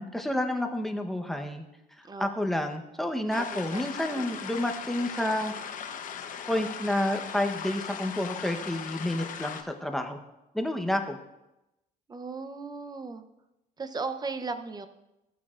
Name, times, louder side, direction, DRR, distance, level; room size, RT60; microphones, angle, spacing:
voice 1, 0.0-1.6 2.2-5.5 6.5-10.2 10.5-11.2, left 1 dB, ahead, 4 dB, 0.9 m, -29 dB
sound 1, 3.3-9.6, left 7 dB, 50° left, 0.9 m, -38 dB
voice 2, 12.1-13.2 13.8-14.9, right 4 dB, 25° right, 9 dB, 0.7 m, -36 dB
15.0 x 8.4 x 2.5 m, 0.94 s
cardioid pair, 110°, 17 cm